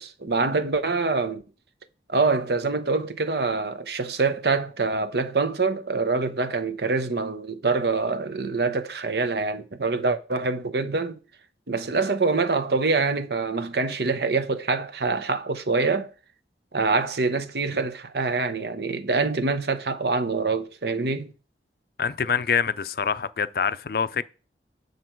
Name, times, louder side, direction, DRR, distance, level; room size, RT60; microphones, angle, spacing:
voice 1, 0.0-1.4 2.1-11.2 11.7-16.1 16.7-21.3, right 3 dB, 65° right, 0.9 m, -25 dB
voice 2, 22.0-24.2, left 6 dB, 55° left, 0.5 m, -25 dB
9.3 x 6.5 x 4.5 m
head